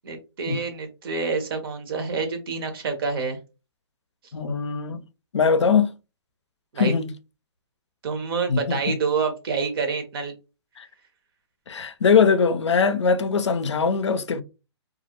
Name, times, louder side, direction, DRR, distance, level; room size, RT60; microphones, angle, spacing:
voice 1, 0.0-3.4 6.7-6.9 8.0-10.3, right 5 dB, 55° right, 0.8 m, -27 dB
voice 2, 4.3-5.0 5.3-5.9 6.8-7.1 8.5-8.9 10.8-10.9 11.7-14.4, left 5 dB, 85° left, 0.4 m, -21 dB
2.3 x 2.0 x 2.8 m
hypercardioid pair, 135°, 15 cm